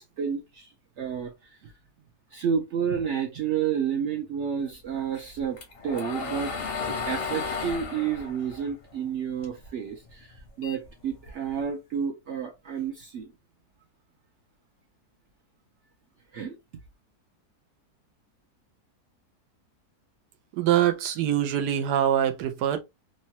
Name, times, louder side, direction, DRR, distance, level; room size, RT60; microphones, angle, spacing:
voice 1, 0.0-1.7 2.3-13.3 16.3-16.6, right 7 dB, 70° right, 0.7 m, -31 dB
sound 1, 5.1-9.7 10.0-11.6, left 4 dB, 55° left, 0.7 m, -34 dB
voice 2, 20.5-22.8, right 10 dB, 85° right, 1.2 m, -24 dB
3.0 x 2.2 x 2.7 m
omnidirectional pair, 1.7 m